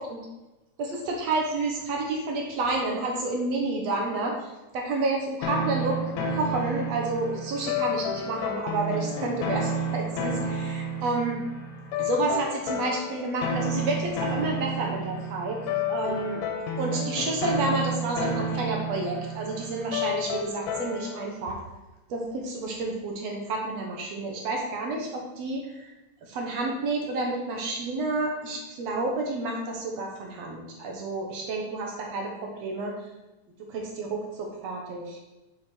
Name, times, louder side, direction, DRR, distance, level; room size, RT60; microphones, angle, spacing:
voice 1, 0.8-6.0 6.3-11.4 12.0-15.6 15.9-16.4 16.8-21.6 22.1-25.9 26.2-33.0 33.6-35.2, right 2 dB, 65° right, 0 dB, 2.2 m, -30 dB
sound 1, 5.4-21.3, left 1 dB, 75° left, 2.1 m, -31 dB
7.4 x 5.8 x 4.4 m, 1.0 s
omnidirectional pair, 3.3 m